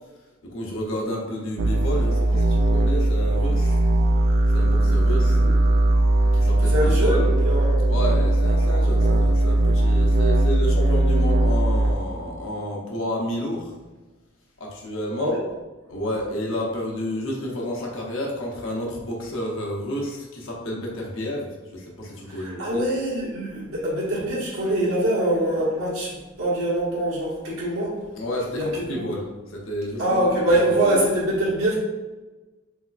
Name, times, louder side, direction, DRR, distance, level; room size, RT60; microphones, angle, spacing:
voice 1, 0.4-3.8 4.5-5.4 6.3-7.2 7.9-13.7 14.6-15.3 15.9-22.9 28.2-30.3 30.5-31.0, left 1 dB, 70° left, -2 dB, 0.8 m, -30 dB
sound 1, 1.6-11.9, right 1 dB, 60° right, 0.3 m, -19 dB
voice 2, 6.7-7.9 15.2-15.4 22.3-28.0 28.5-29.1 30.0-31.8, right 1 dB, 85° right, -6 dB, 1.2 m, -24 dB
3.4 x 3.0 x 2.5 m, 1.2 s
head